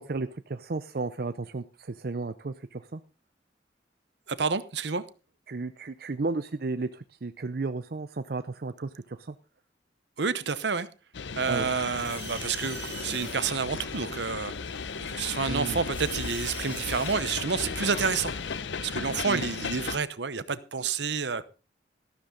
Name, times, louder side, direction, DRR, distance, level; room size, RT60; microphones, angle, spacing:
voice 1, 0.0-3.0 5.5-9.3 11.5-11.7 15.5-15.8 19.3-19.5, right 3 dB, 55° right, 0.5 m, -33 dB
voice 2, 4.3-5.0 10.2-10.9 11.3-14.7 15.1-18.3 18.8-21.5, right 5 dB, 75° right, 0.9 m, -29 dB
sound 1, 11.1-20.0, left 5 dB, 80° left, 0.7 m, -35 dB
sound 2, 11.4-18.6, right 3 dB, 10° right, 6.0 m, -45 dB
13.0 x 12.5 x 3.8 m
head